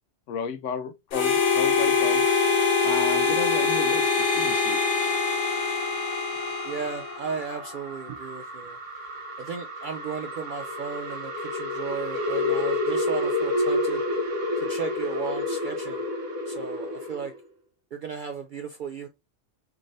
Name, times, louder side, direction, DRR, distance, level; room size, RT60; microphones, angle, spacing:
voice 1, 0.3-2.3 2.8-4.8, left 6 dB, 80° left, 0.9 m, -33 dB
Harmonica, 1.1-7.5, left 4 dB, 55° left, 0.7 m, -24 dB
sound 1, 2.2-17.4, left 2 dB, 90° right, 1.2 m, -31 dB
voice 2, 6.6-8.8 9.4-14.0 14.6-16.0 16.5-17.3 17.9-19.1, right 6 dB, 60° right, 0.5 m, -35 dB
3.5 x 3.2 x 2.6 m
omnidirectional pair, 1.3 m